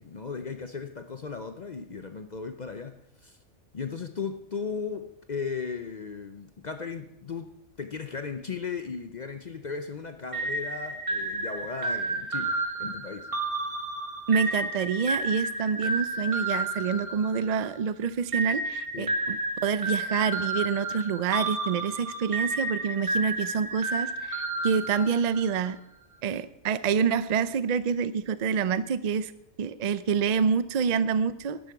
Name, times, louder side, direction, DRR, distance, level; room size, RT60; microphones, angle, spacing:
voice 1, 0.0-3.4 3.7-13.3 18.9-19.2, left 5 dB, 45° left, 8 dB, 0.6 m, -36 dB
sound 1, 10.3-17.8 18.3-25.6, right 2 dB, 25° right, 1.6 m, -31 dB
voice 2, 14.3-25.8 26.2-29.3 29.6-31.7, right 6 dB, 55° right, 14 dB, 0.4 m, -27 dB
13.0 x 10.5 x 4.7 m, 0.78 s
omnidirectional pair, 1.4 m